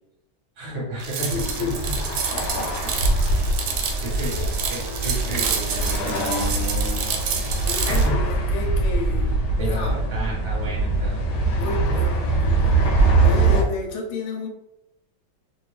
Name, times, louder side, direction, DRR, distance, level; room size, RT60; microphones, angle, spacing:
voice 1, 0.6-1.7 2.8-3.0 3.6-6.2 7.8-8.2 9.6-11.3 11.9-12.0, right 1 dB, 40° right, -4 dB, 1.2 m, -32 dB
sound 1, 1.0-8.1, right 7 dB, 90° right, 1.5 m, -29 dB
voice 2, 1.3-2.3 7.7-10.0 11.6-14.5, left 4 dB, 85° left, 1 dB, 1.5 m, -32 dB
sound 2, 1.3-13.6, right 2 dB, 65° left, 1.1 m, -23 dB
3.2 x 2.6 x 3.2 m, 0.88 s
omnidirectional pair, 2.3 m